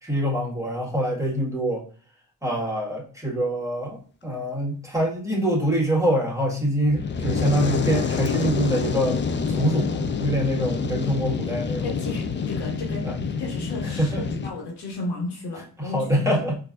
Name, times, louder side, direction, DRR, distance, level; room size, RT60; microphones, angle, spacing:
voice 1, 0.0-1.8 2.4-9.2 9.5-11.9 13.0-13.2 14.0-14.3 15.8-16.6, equal, 10° right, -4 dB, 1.6 m, -25 dB
Fire, 6.9-14.5, left 5 dB, 30° left, 0.4 m, -27 dB
voice 2, 11.8-13.0 13.4-16.2, left 2 dB, 85° left, 0 dB, 1.3 m, -33 dB
4.4 x 2.7 x 2.4 m, 0.40 s
cardioid pair, 65°, 39 cm